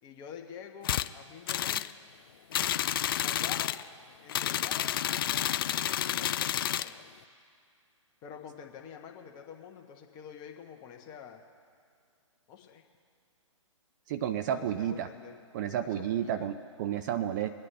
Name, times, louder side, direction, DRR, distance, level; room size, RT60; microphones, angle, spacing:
voice 1, 0.0-1.8 3.2-3.8 4.2-5.0 5.5-7.1 8.2-11.4 12.5-12.8 14.5-15.4 15.7-16.3, left 8 dB, 25° left, 2 dB, 1.3 m, -47 dB
sound 1, 0.8-1.1 1.5-1.9 2.5-3.8 4.3-6.9, left 11 dB, 45° left, 0.4 m, -30 dB
voice 2, 14.1-15.1 15.5-17.6, right 10 dB, 35° right, 10 dB, 0.5 m, -31 dB
23.5 x 9.5 x 3.4 m, 2.3 s
figure-of-eight pair, 130°, 17 cm